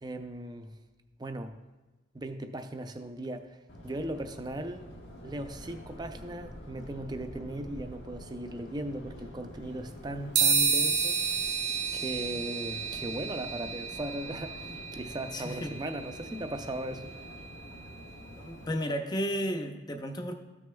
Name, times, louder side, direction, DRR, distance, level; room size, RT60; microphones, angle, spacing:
voice 1, 0.0-0.7 1.2-1.5 2.1-4.9 5.2-11.6 11.9-17.1, right 1 dB, 20° right, 7 dB, 0.5 m, -38 dB
Subway metro underground, 3.7-18.7, equal, 80° left, 1.4 m, -47 dB
sound 1, 10.4-18.0, right 5 dB, 90° right, 1.1 m, -31 dB
voice 2, 15.3-15.7 18.4-20.3, equal, 20° left, 5 dB, 0.6 m, -33 dB
13.5 x 6.2 x 2.3 m, 1.1 s
head